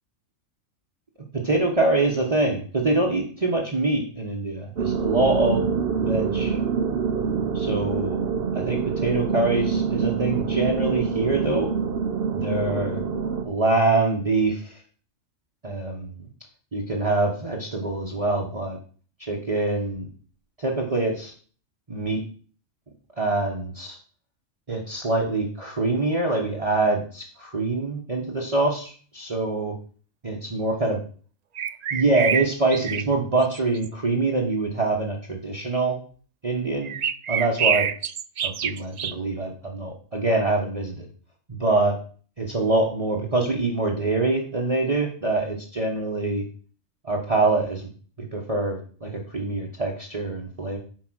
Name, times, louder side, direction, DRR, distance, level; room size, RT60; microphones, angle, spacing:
voice 1, 1.3-5.7 6.0-6.6 7.5-8.2 8.5-11.7 12.3-13.0 13.4-14.8 15.6-16.2 16.7-18.8 19.2-20.1 20.6-21.3 21.9-22.2 23.2-24.0 24.7-29.8 30.2-31.0 31.9-36.0 36.4-37.0 37.3-37.9 38.4-41.1 41.5-42.0 42.4-46.4 47.0-47.9 48.2-50.8, right 2 dB, 30° right, -1 dB, 1.3 m, -25 dB
sound 1, 4.8-13.4, right 6 dB, 50° right, 1.1 m, -26 dB
sound 2, 31.5-33.0 33.4-33.9 36.8-39.1, right 8 dB, 80° right, 0.3 m, -26 dB
8.9 x 5.3 x 6.3 m, 0.42 s
omnidirectional pair, 1.3 m